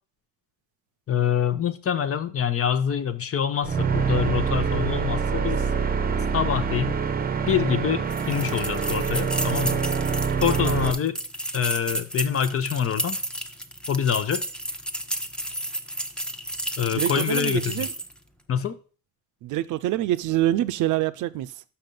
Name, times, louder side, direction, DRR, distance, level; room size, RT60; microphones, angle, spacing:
voice 1, 1.1-5.7 6.3-7.0 7.5-9.8 10.4-11.2 11.5-13.2 13.9-14.4 16.8-17.8 18.5-18.8, left 8 dB, 50° left, 0.8 m, -25 dB
sound 1, 3.6-10.9, right 6 dB, 30° right, 0.7 m, -25 dB
sound 2, 8.1-18.2, right 1 dB, 5° left, 0.7 m, -32 dB
voice 2, 16.9-17.9 19.4-21.6, right 14 dB, 85° right, 0.5 m, -26 dB
5.9 x 5.6 x 5.3 m
cardioid pair, 90°, 30 cm